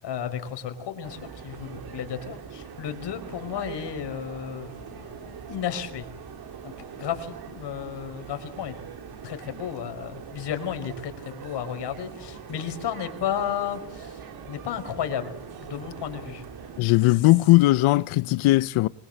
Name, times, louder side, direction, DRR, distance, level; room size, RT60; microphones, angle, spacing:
voice 1, 0.0-6.1 6.6-8.7 9.2-14.2 14.5-16.4 17.1-17.3, left 9 dB, 60° left, 5.0 m, -33 dB
sound 1, 1.0-16.8, right 6 dB, 50° right, 3.3 m, -42 dB
voice 2, 16.8-18.9, left 18 dB, 90° left, 0.9 m, -19 dB
25.5 x 22.5 x 8.0 m
cardioid pair, 150°, 48 cm